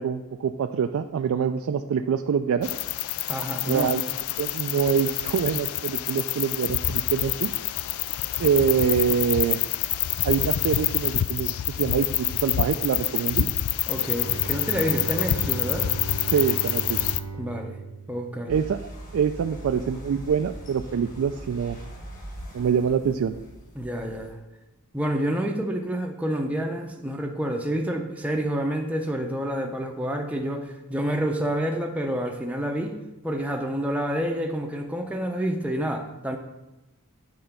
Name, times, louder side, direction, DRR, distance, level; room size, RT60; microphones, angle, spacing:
voice 1, 0.0-2.7 3.6-4.1 4.4-7.5 8.4-9.6 10.2-13.5 16.3-17.0 18.5-18.8 19.1-21.8 22.5-23.4, right 7 dB, 65° right, 7 dB, 0.3 m, -25 dB
sound 1, 2.6-17.2, left 13 dB, 70° left, 0.3 m, -27 dB
voice 2, 3.3-3.9 13.9-15.9 17.4-17.8 18.1-18.6 23.8-24.4 24.9-33.0 33.2-36.4, equal, 5° right, 2 dB, 0.6 m, -28 dB
Bowed string instrument, 13.8-18.8, right 5 dB, 85° right, 0.9 m, -36 dB
sound 2, 18.5-24.3, right 1 dB, 35° left, 1.9 m, -41 dB
8.8 x 3.8 x 5.7 m, 1.0 s
head